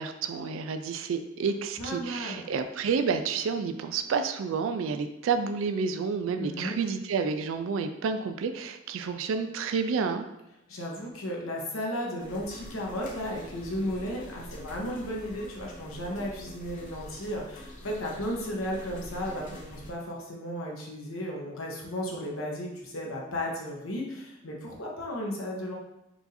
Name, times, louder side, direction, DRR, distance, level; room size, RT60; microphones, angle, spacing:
voice 1, 0.0-10.2, right 5 dB, 70° right, 8 dB, 0.3 m, -30 dB
voice 2, 1.8-2.4 6.4-6.7 10.7-25.8, equal, 85° left, -1 dB, 1.0 m, -34 dB
sound 1, 12.2-19.9, left 1 dB, 40° left, 0.6 m, -45 dB
4.6 x 2.6 x 4.0 m, 0.90 s
head